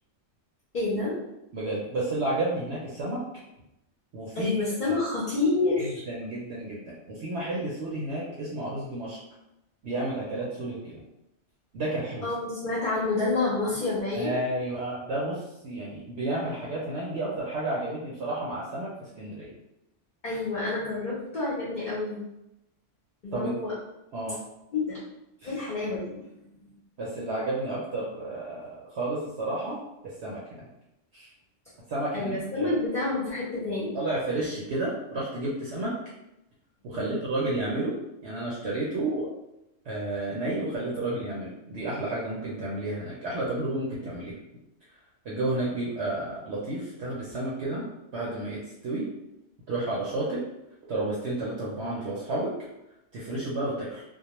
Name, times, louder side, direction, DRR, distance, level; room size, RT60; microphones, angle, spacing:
voice 1, 0.7-1.2 4.3-6.0 12.2-14.3 20.2-22.2 23.2-23.7 24.7-25.0 25.4-26.7 32.1-34.0 36.9-37.1, left 3 dB, 45° left, -7 dB, 0.7 m, -28 dB
voice 2, 1.5-3.2 4.1-4.5 4.8-5.0 5.8-9.2 9.8-11.0 11.7-12.2 14.2-18.9 19.2-19.5 23.3-23.6 24.1-24.4 25.4-25.5 27.0-29.8 30.0-30.7 31.1-31.3 31.9-32.7 33.9-35.9 36.8-37.9 38.2-39.3 39.9-44.3 45.2-47.8 48.1-49.1 49.7-50.4 50.9-52.5 53.1-54.0, right 2 dB, 65° right, -5 dB, 0.8 m, -31 dB
2.2 x 2.2 x 2.9 m, 0.87 s
omnidirectional pair, 1.3 m